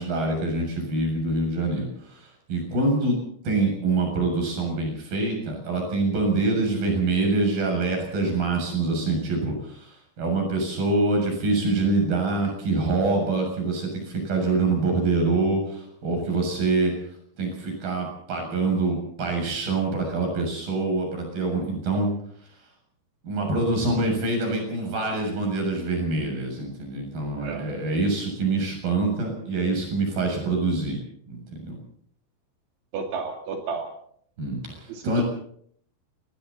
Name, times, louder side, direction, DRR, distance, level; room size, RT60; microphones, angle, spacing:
voice 1, 0.0-3.2 3.4-16.9 17.4-22.1 23.2-31.0 31.3-31.8 34.4-35.2, right 3 dB, 50° right, 2 dB, 8.8 m, -25 dB
voice 2, 32.9-33.9 34.9-35.2, right 5 dB, 80° right, 3 dB, 4.8 m, -32 dB
28.5 x 21.5 x 4.2 m, 0.64 s
omnidirectional pair, 5.3 m